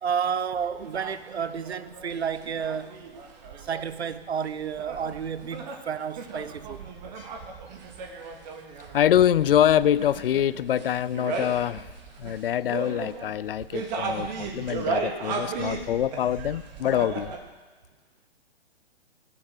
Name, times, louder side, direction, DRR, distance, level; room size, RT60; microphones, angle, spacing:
voice 1, 0.0-3.0 3.6-6.8, right 7 dB, 80° right, 14 dB, 0.9 m, -31 dB
sound 1, 0.5-17.4, right 4 dB, 40° right, 2.2 m, -36 dB
voice 2, 8.9-11.8 12.2-17.3, left 10 dB, 60° left, 19 dB, 0.5 m, -24 dB
19.0 x 7.1 x 6.5 m, 1.2 s
hypercardioid pair, 130°, 32 cm